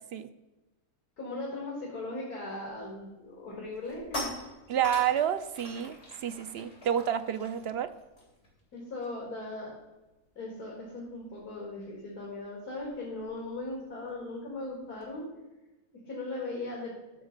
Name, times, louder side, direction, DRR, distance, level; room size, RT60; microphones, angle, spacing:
voice 1, 1.2-4.5 8.7-9.7 10.4-15.3 16.0-17.0, left 2 dB, 75° left, -3 dB, 2.6 m, -38 dB
sound 1, 2.7-3.0 3.4-9.3 9.6-9.8 10.1-15.1, left 2 dB, 45° left, 3.3 m, -45 dB
voice 2, 4.7-7.9, right 9 dB, 70° right, 10 dB, 0.6 m, -29 dB
11.5 x 7.1 x 5.2 m, 1.1 s
omnidirectional pair, 1.6 m